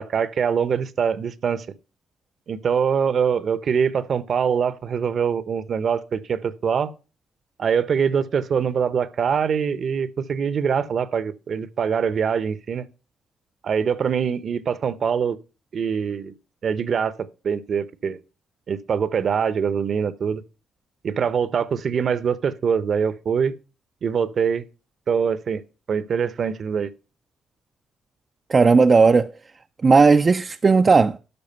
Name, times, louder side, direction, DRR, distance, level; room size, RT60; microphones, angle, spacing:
voice 1, 0.0-1.7 2.5-6.9 7.6-12.9 13.6-15.4 15.7-16.3 16.6-18.2 18.7-20.4 21.0-23.5 24.0-24.6 25.1-25.6 25.9-26.9, right 7 dB, 55° right, 0.8 m, -23 dB
voice 2, 28.5-29.3 29.8-31.2, right 4 dB, 35° right, 0.4 m, -15 dB
12.5 x 5.0 x 5.5 m
cardioid pair, 90°, 0 cm